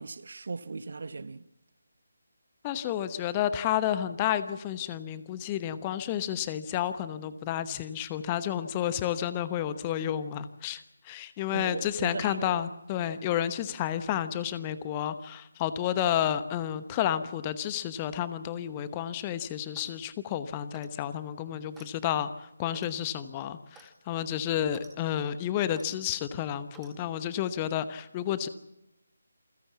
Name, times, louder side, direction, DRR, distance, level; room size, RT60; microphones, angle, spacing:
voice 1, 0.0-1.5 11.5-12.6, right 4 dB, 50° right, 0.9 m, -38 dB
voice 2, 2.6-28.5, left 10 dB, 20° left, 1.0 m, -31 dB
Clock, 19.6-20.0 20.7-21.0 21.7-21.9 22.7-23.0 23.7-23.9 24.7-24.9 25.7-25.9 26.7-27.0, right 4 dB, 5° right, 2.1 m, -54 dB
28.0 x 16.0 x 7.2 m
figure-of-eight pair, 150°, 0 cm